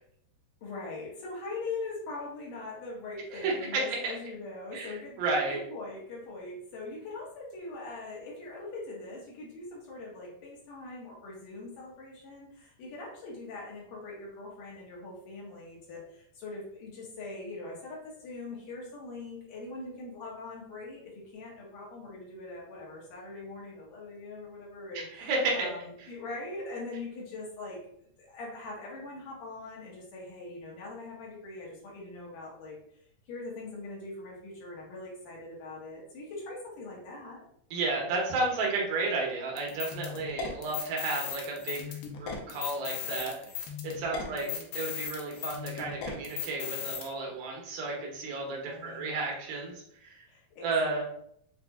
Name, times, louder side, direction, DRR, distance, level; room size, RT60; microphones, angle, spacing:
voice 1, 0.6-25.3 25.6-32.8 33.3-37.4 44.1-44.7 48.6-49.1 50.3-51.0, left 2 dB, 70° left, -4 dB, 2.6 m, -42 dB
voice 2, 3.3-4.1 4.7-4.9 5.2-5.6 24.9-25.7 37.7-43.3 43.8-44.5 44.7-50.2 50.6-51.0, right 3 dB, 80° right, -1 dB, 2.7 m, -32 dB
sound 1, 39.6-47.1, left 8 dB, 85° left, 2.5 m, -37 dB
7.0 x 2.4 x 2.3 m, 0.68 s
omnidirectional pair, 4.2 m